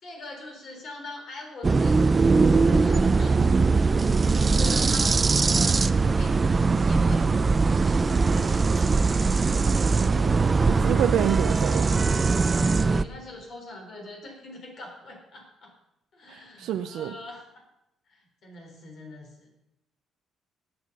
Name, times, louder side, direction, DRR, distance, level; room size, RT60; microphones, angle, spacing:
voice 1, 0.0-3.4 3.7-5.1 5.5-7.3 7.7-9.5 11.7-11.9 12.7-15.7 16.1-17.4 18.1-19.5, left 2 dB, 55° left, 1 dB, 4.0 m, -43 dB
sound 1, 1.6-13.0, right 4 dB, 25° right, 0.4 m, -21 dB
voice 2, 9.9-11.9 16.3-17.1, right 10 dB, 80° right, 7 dB, 0.5 m, -29 dB
20.0 x 7.0 x 5.4 m, 0.86 s
cardioid pair, 120°, 0 cm